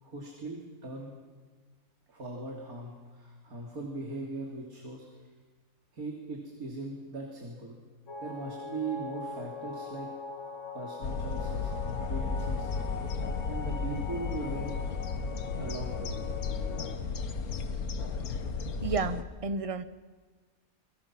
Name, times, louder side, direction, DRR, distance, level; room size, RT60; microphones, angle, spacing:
voice 1, 0.0-1.1 2.1-5.1 5.9-7.8 8.2-10.1 10.7-12.7 13.5-14.7 15.6-16.3, right 3 dB, 75° right, -1 dB, 3.4 m, -39 dB
sound 1, 8.1-17.0, left 5 dB, 55° left, 2.3 m, -42 dB
sound 2, 11.0-19.2, left 4 dB, 75° left, 1.7 m, -34 dB
voice 2, 18.8-19.8, right 4 dB, 30° right, 13 dB, 0.7 m, -33 dB
28.5 x 23.0 x 5.9 m, 1.5 s
omnidirectional pair, 1.5 m